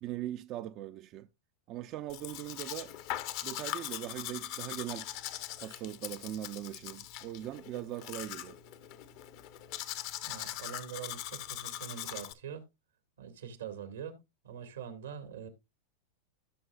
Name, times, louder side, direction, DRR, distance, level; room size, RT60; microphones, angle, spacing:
voice 1, 0.0-1.3 1.7-3.0 3.4-5.1 5.6-8.6, right 13 dB, 45° right, 0.5 m, -40 dB
Domestic sounds home sounds, 2.1-12.3, left 13 dB, 55° left, 1.0 m, -41 dB
voice 2, 10.2-12.7 13.2-14.2 14.4-15.5, right 8 dB, 90° right, 2.1 m, -44 dB
15.5 x 6.1 x 2.4 m
hypercardioid pair, 115°, 0 cm